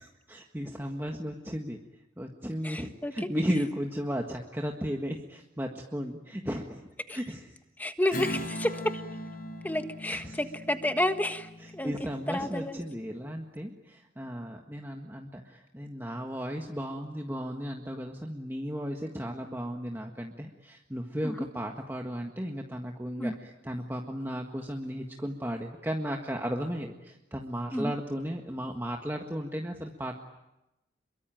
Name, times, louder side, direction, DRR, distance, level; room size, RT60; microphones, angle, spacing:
voice 1, 0.3-1.8 2.2-6.8 7.1-7.4 8.1-8.2 10.1-10.4 11.8-30.2, equal, 10° right, 2 dB, 1.6 m, -35 dB
voice 2, 2.6-3.3 7.1-7.2 7.8-9.0 9.6-11.9 12.3-12.8 21.2-21.5 23.2-23.3 27.7-27.9, left 1 dB, 10° left, 8 dB, 1.5 m, -30 dB
Strum, 8.1-13.0, equal, 50° left, 4.3 m, -40 dB
28.0 x 23.0 x 9.1 m, 0.92 s
head